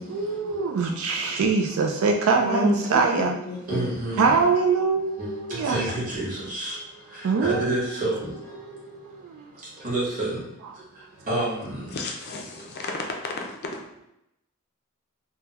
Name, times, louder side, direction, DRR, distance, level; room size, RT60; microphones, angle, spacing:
voice 1, 0.1-3.3 4.2-5.9 7.2-7.7 8.6-9.5, right 4 dB, 70° right, 2 dB, 0.3 m, -23 dB
voice 2, 2.4-3.9 11.9-13.8, left 1 dB, 50° left, 1 dB, 0.5 m, -30 dB
voice 3, 3.7-4.3 5.2-6.8 7.1-8.3 9.8-10.4 11.3-11.9, right 1 dB, 40° right, -7 dB, 1.4 m, -29 dB
3.5 x 2.2 x 2.9 m, 0.83 s
head